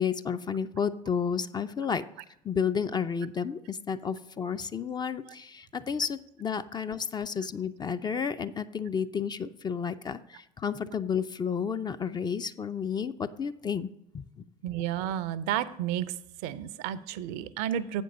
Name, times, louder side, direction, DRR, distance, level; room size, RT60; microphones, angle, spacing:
voice 1, 0.0-2.0 2.4-14.2, left 7 dB, 20° left, 11 dB, 0.4 m, -31 dB
voice 2, 14.6-16.1 16.4-18.0, right 11 dB, 55° right, 16 dB, 0.5 m, -31 dB
7.7 x 5.2 x 6.6 m, 0.81 s
figure-of-eight pair, 65°, 20 cm